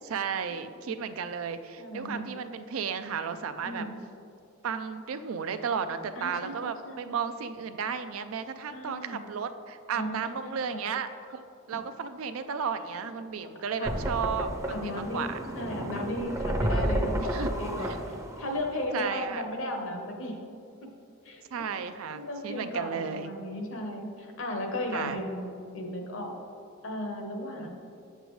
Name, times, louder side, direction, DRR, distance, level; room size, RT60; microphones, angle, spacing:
voice 1, 0.0-3.8 4.6-11.1 11.7-14.5 14.8-15.4 17.2-17.5 17.9-18.0 18.9-19.4 21.5-23.3 24.9-25.2 27.6-27.7, right 6 dB, 80° right, 10 dB, 0.4 m, -33 dB
voice 2, 1.8-2.3 3.6-4.0 6.2-7.1 8.7-9.2 9.9-10.8 13.8-13.9 14.7-15.3 15.5-20.3 20.8-20.9 21.2-21.4 22.1-25.4 25.7-26.3 26.8-27.7, left 1 dB, 65° left, 3 dB, 0.9 m, -35 dB
sound 1, 13.8-18.8, right 1 dB, 15° right, 0.5 m, -31 dB
7.8 x 6.6 x 3.1 m, 2.5 s
head